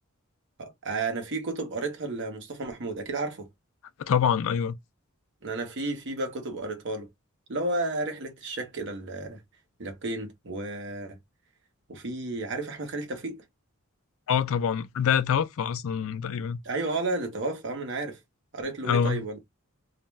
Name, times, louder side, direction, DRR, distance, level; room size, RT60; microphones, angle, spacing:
voice 1, 0.6-3.5 5.4-7.1 7.5-9.4 9.8-11.2 11.9-13.4 16.6-18.2 18.5-19.4, right 2 dB, 60° right, 0.9 m, -32 dB
voice 2, 4.0-4.8 14.3-16.6 18.8-19.2, left 7 dB, 65° left, 0.4 m, -25 dB
2.4 x 2.2 x 3.2 m
head